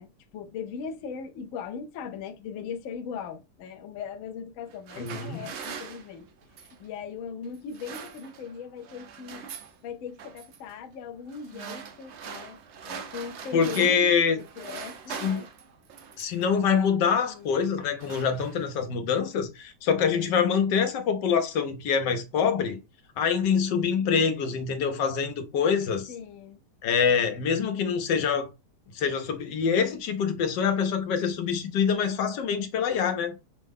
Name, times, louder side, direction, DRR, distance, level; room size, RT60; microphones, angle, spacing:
voice 1, 0.0-6.3 6.6-9.5 9.8-12.6 12.9-15.5 17.3-17.6 26.1-26.6, left 6 dB, 65° left, 0.8 m, -39 dB
sound 1, 4.7-6.9 7.5-8.6 8.8-9.8 10.2-10.6 11.3-14.1 14.4-16.5 17.3-17.5 17.8-18.9, right 7 dB, 65° right, 0.7 m, -42 dB
voice 2, 5.0-5.5 13.5-14.4 15.1-15.4 16.2-22.8 23.2-26.1 26.8-28.5 28.9-33.4, left 6 dB, 85° left, 1.4 m, -25 dB
5.7 x 2.1 x 3.4 m
omnidirectional pair, 1.8 m